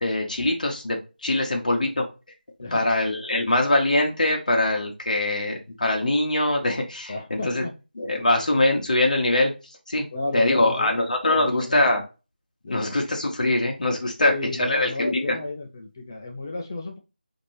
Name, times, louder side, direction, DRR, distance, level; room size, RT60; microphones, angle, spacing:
voice 1, 0.0-2.0 2.7-7.6 8.0-10.0 10.3-12.0 12.7-14.3 14.6-15.4, left 2 dB, 50° left, 1 dB, 0.9 m, -23 dB
voice 2, 2.6-2.9 7.1-7.7 10.1-10.9 11.4-11.9 12.6-13.0 14.2-17.0, left 2 dB, 20° left, 2 dB, 0.4 m, -33 dB
5.0 x 2.7 x 3.0 m, 0.29 s
figure-of-eight pair, 165°, 6 cm